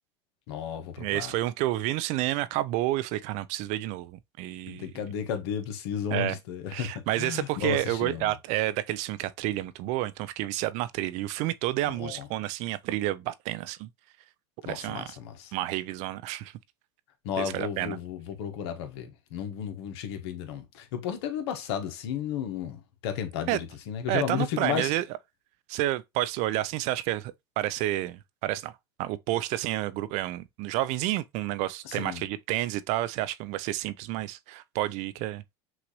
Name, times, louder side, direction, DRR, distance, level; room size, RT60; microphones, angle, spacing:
voice 1, 0.5-1.3 4.7-8.3 11.9-12.3 14.6-15.5 17.2-24.9 31.8-32.2, left 8 dB, 75° left, 1.1 m, -33 dB
voice 2, 1.0-4.9 6.1-6.4 6.7-13.9 14.6-15.2 15.5-16.5 17.4-18.0 23.5-23.6 24.1-25.0 25.7-35.4, right 15 dB, 55° right, 0.5 m, -30 dB
6.1 x 2.5 x 2.9 m
supercardioid pair, 105°, 14 cm